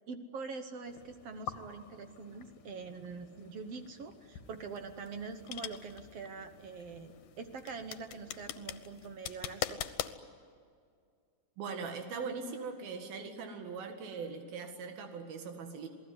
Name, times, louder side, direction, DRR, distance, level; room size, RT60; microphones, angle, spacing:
voice 1, 0.1-9.9, right 4 dB, 60° right, 8 dB, 1.6 m, -44 dB
sound 1, 0.8-9.2, left 7 dB, 60° left, 2.7 m, -52 dB
sound 2, 4.5-10.2, left 12 dB, 75° left, 2.6 m, -41 dB
voice 2, 11.6-15.9, right 5 dB, 90° right, 5 dB, 3.7 m, -40 dB
28.0 x 18.5 x 9.6 m, 2.2 s
omnidirectional pair, 4.1 m